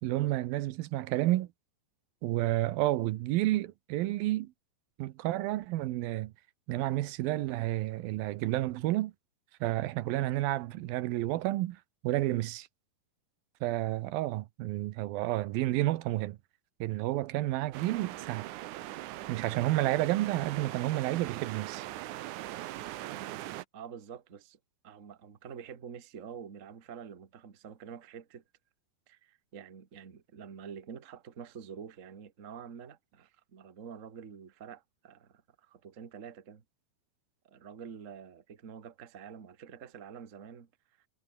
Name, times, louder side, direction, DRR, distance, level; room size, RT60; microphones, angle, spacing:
voice 1, 0.0-1.5 2.2-4.5 5.0-6.3 6.7-9.1 9.6-11.8 12.0-12.7 13.6-16.4 16.8-18.5 19.3-21.9, right 16 dB, 90° right, 2.7 m, -30 dB
sound 1, 17.7-23.6, right 15 dB, 70° right, 2.0 m, -41 dB
voice 2, 23.1-23.4 23.7-24.6 24.8-28.4 29.1-36.6 37.4-40.7, right 7 dB, 35° right, 1.2 m, -47 dB
omnidirectional pair, 4.1 m